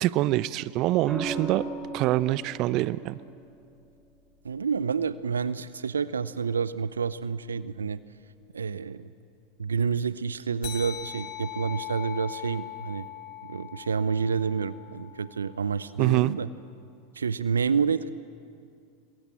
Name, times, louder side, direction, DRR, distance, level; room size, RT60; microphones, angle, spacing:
voice 1, 0.0-1.6 1.9-3.2 16.0-16.3, right 16 dB, 45° right, 18 dB, 0.7 m, -25 dB
sound 1, 1.1-5.2 6.9-7.3, right 3 dB, 15° right, 6.5 m, -39 dB
voice 2, 4.4-8.0 8.5-9.1 9.6-13.1 13.4-16.5 17.1-18.1, right 6 dB, 80° right, 17 dB, 0.6 m, -29 dB
sound 2, 10.6-15.5, left 12 dB, 50° left, 3.9 m, -40 dB
27.5 x 22.0 x 7.6 m, 2.4 s
figure-of-eight pair, 90°, 0 cm